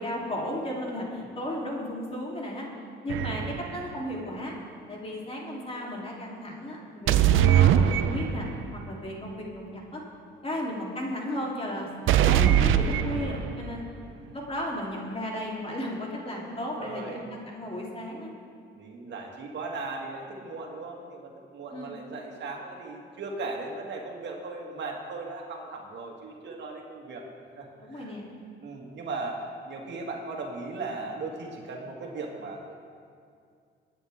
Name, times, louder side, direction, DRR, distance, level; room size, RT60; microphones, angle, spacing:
voice 1, 0.0-2.7 3.0-4.5 4.9-8.5 8.9-10.0 10.4-13.9 14.3-18.3 21.7-22.0 27.8-28.2, left 1 dB, 30° left, -3 dB, 3.3 m, -34 dB
sound 1, 3.1-3.8 7.1-8.6 12.1-13.7, right 10 dB, 85° right, 0.6 m, -22 dB
voice 2, 16.3-17.3 18.7-27.3 27.6-28.1 28.6-32.8, right 3 dB, 65° right, 0 dB, 2.0 m, -37 dB
23.0 x 9.4 x 3.6 m, 2.3 s
cardioid pair, 90°, 20 cm